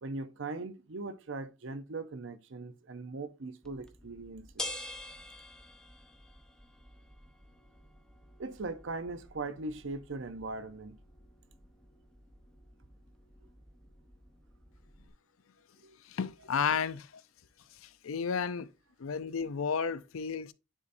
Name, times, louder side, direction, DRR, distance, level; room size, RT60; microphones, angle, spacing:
voice 1, 0.0-4.7 8.4-11.0 15.8-16.0, right 3 dB, 65° right, 0.7 m, -40 dB
sound 1, 3.6-15.1, left 1 dB, 5° left, 0.8 m, -49 dB
voice 2, 16.1-17.2 17.8-18.7 19.0-20.5, left 6 dB, 90° left, 0.5 m, -32 dB
9.9 x 4.1 x 2.6 m
head